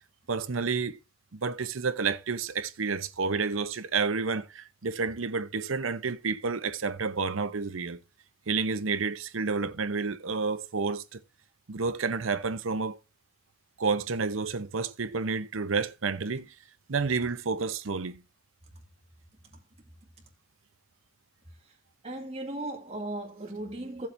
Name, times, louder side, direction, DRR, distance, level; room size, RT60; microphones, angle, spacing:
voice 1, 0.3-1.0 1.3-8.0 8.5-11.2 11.7-13.0 13.8-16.5 16.9-18.2, right 4 dB, 90° right, 0.8 m, -30 dB
voice 2, 22.0-24.1, right 1 dB, 30° right, 2.2 m, -37 dB
15.5 x 7.6 x 2.6 m
head